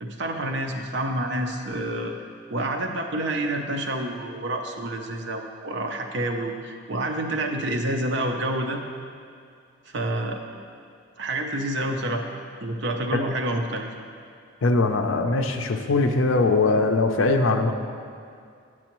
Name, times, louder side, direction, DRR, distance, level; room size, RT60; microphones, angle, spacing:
voice 1, 0.0-2.1 2.5-8.8 9.9-10.4 11.2-12.2 12.6-13.9, right 1 dB, 55° right, 3 dB, 0.6 m, -28 dB
voice 2, 14.6-17.7, left 3 dB, 65° left, 5 dB, 0.5 m, -21 dB
9.0 x 6.1 x 3.0 m, 2.3 s
head